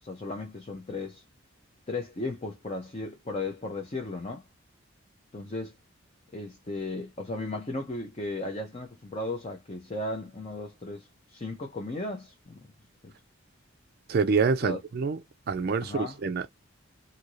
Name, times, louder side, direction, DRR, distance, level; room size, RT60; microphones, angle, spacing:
voice 1, 0.0-1.2 1.9-4.4 5.3-5.8 6.3-12.6 14.6-14.8 15.8-16.2, left 2 dB, 30° left, 0.6 m, -35 dB
voice 2, 14.1-15.2 15.5-16.5, right 5 dB, 45° right, 0.3 m, -26 dB
2.7 x 2.5 x 2.9 m
head